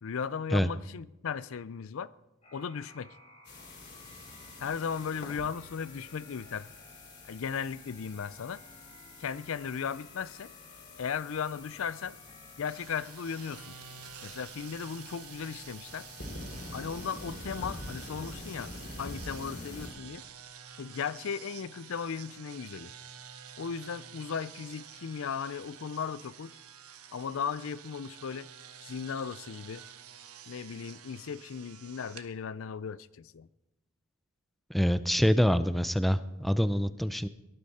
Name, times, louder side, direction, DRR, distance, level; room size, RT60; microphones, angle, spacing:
voice 1, 0.0-2.1 2.5-3.1 4.6-6.7 7.3-8.6 9.2-10.5 11.0-12.2 12.6-13.8 14.2-16.1 16.7-18.7 19.0-20.2 20.8-22.9 23.6-26.5 27.1-28.5 28.8-29.8 30.5-33.5, left 6 dB, 65° left, 0.4 m, -36 dB
sound 1, 2.4-12.8, left 1 dB, 30° left, 2.6 m, -56 dB
sound 2, 3.4-19.9, left 2 dB, 50° left, 3.3 m, -46 dB
sound 3, 12.7-32.3, right 8 dB, 85° right, 1.2 m, -49 dB
voice 2, 34.7-37.3, equal, ahead, 0.4 m, -26 dB
18.0 x 13.0 x 4.2 m
head